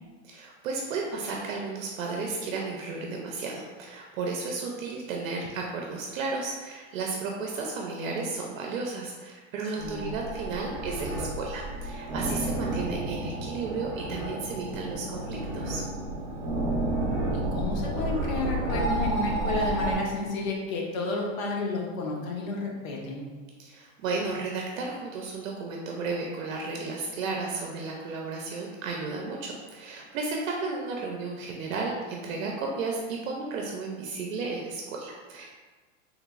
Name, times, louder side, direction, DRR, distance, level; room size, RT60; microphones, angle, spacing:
voice 1, 0.2-15.8 23.6-35.5, right 4 dB, 75° right, 0 dB, 0.5 m, -33 dB
voice 2, 9.8-10.1 17.3-23.3, left 3 dB, 85° left, -1 dB, 0.9 m, -31 dB
sound 1, 9.8-20.0, right 1 dB, 35° right, 0.8 m, -31 dB
3.2 x 2.9 x 2.4 m, 1.4 s
supercardioid pair, 170°, 40 cm